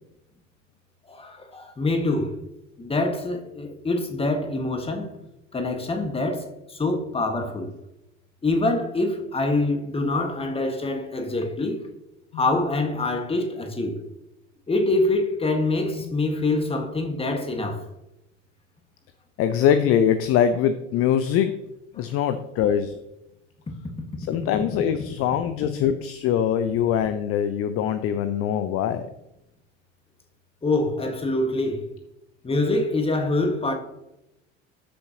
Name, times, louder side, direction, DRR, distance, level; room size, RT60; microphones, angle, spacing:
voice 1, 1.1-2.4 2.8-5.2 5.5-7.7 8.4-11.9 12.3-14.0 14.7-17.9 21.9-22.1 30.6-31.9 32.4-33.7, left 2 dB, 15° left, 1.6 m, -25 dB
voice 2, 19.4-21.6 22.0-23.0 24.3-29.1, left 9 dB, 40° left, 0.7 m, -23 dB
13.0 x 6.7 x 2.9 m
figure-of-eight pair, 70°, 37 cm